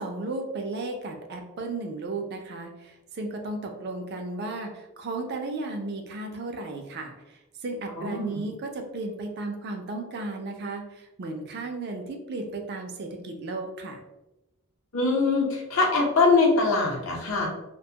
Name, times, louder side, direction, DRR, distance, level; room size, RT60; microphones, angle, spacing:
voice 1, 0.0-14.0, right 2 dB, 50° right, 3 dB, 0.4 m, -34 dB
voice 2, 8.0-8.4 14.9-17.5, left 3 dB, 70° left, -2 dB, 0.7 m, -23 dB
2.5 x 2.2 x 2.7 m, 0.97 s
head